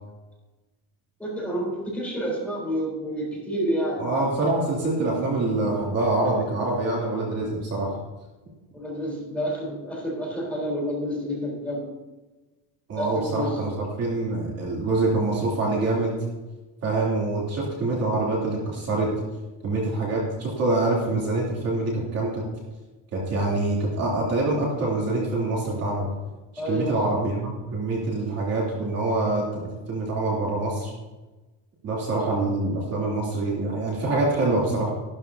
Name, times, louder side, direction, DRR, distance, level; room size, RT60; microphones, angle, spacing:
voice 1, 1.2-4.0 8.7-11.9 12.9-13.6 26.6-27.1, equal, 5° left, -5 dB, 4.0 m, -29 dB
voice 2, 4.0-7.9 12.9-13.7 14.0-16.2 16.8-19.1 19.6-22.4 23.1-26.1 26.7-30.9 31.8-34.9, right 2 dB, 40° right, -4 dB, 3.3 m, -25 dB
14.0 x 13.0 x 2.9 m, 1.2 s
cardioid pair, 160°, 40 cm